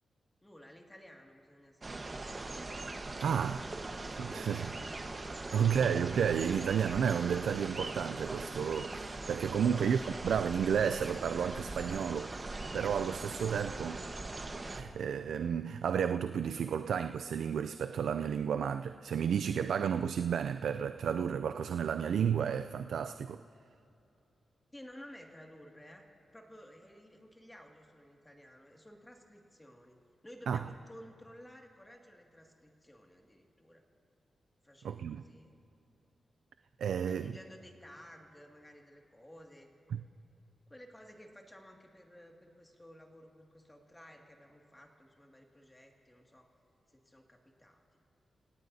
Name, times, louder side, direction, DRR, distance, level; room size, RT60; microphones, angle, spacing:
voice 1, 0.4-2.4 4.3-5.0 5.4-5.9 24.7-30.0 30.2-33.8 34.6-35.5 37.0-39.7 40.7-46.5 46.9-48.0, equal, 15° left, 1 dB, 2.2 m, -55 dB
sound 1, 1.8-14.8, right 2 dB, 35° right, 1.2 m, -41 dB
voice 2, 3.2-3.6 4.2-4.7 5.5-14.0 14.7-23.4 30.5-30.6 34.8-35.2 36.8-37.3 39.9-40.0, right 7 dB, 85° right, 9 dB, 0.3 m, -32 dB
29.5 x 17.5 x 2.8 m, 2.8 s
cardioid pair, 75°, 0 cm